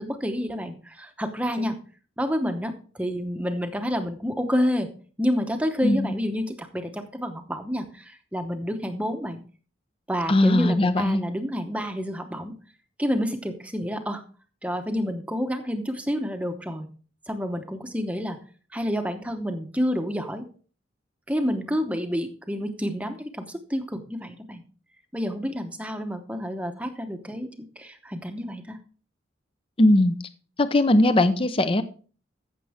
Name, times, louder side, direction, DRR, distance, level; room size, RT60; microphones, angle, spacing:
voice 1, 0.0-1.8 2.2-4.9 5.2-9.4 10.1-12.5 13.0-14.2 14.6-16.9 17.3-18.4 18.7-20.5 21.3-24.6 25.1-28.8, equal, 5° right, 6 dB, 0.8 m, -29 dB
voice 2, 10.3-11.2 29.8-30.1 30.6-31.8, left 1 dB, 30° left, 12 dB, 0.5 m, -19 dB
15.0 x 6.8 x 3.5 m, 0.40 s
head